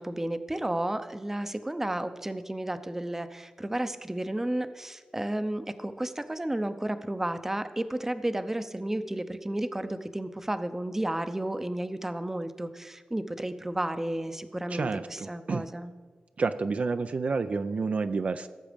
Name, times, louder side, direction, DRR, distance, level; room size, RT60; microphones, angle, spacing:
voice 1, 0.0-15.9, right 1 dB, 15° right, 10 dB, 0.6 m, -32 dB
voice 2, 14.7-15.7 16.4-18.5, right 4 dB, 55° right, 10 dB, 0.4 m, -29 dB
17.0 x 7.3 x 5.1 m, 1.5 s
wide cardioid pair, 100°, 3 cm